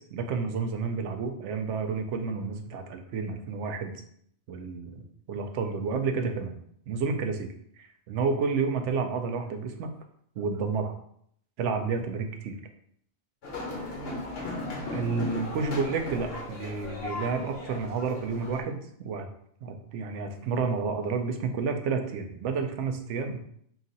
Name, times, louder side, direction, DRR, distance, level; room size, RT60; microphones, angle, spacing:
voice 1, 0.1-3.9 4.5-6.6 6.9-7.5 7.8-9.9 10.4-10.9 11.6-12.6 14.9-19.3 19.6-23.4, right 5 dB, 75° right, 6 dB, 0.9 m, -30 dB
sound 1, 13.4-18.6, left 2 dB, 55° left, 1.1 m, -36 dB
3.9 x 2.5 x 3.9 m, 0.67 s
omnidirectional pair, 1.3 m